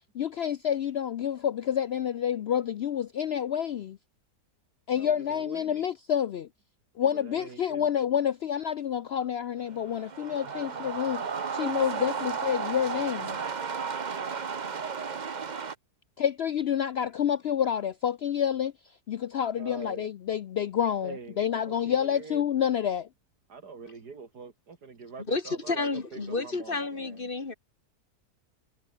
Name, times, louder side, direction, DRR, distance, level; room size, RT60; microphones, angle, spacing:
voice 1, 0.1-4.0 4.9-6.5 7.0-13.4 16.2-18.7 19.1-23.1, left 9 dB, 70° left, 0.6 m, -28 dB
voice 2, 4.9-5.8 7.1-7.9 19.6-20.1 21.0-22.4 23.5-27.3, right 5 dB, 85° right, 3.1 m, -45 dB
sound 1, 9.7-15.7, right 5 dB, 35° right, 0.9 m, -33 dB
voice 3, 25.3-27.5, left 3 dB, 35° left, 1.8 m, -31 dB
omnidirectional pair, 1.7 m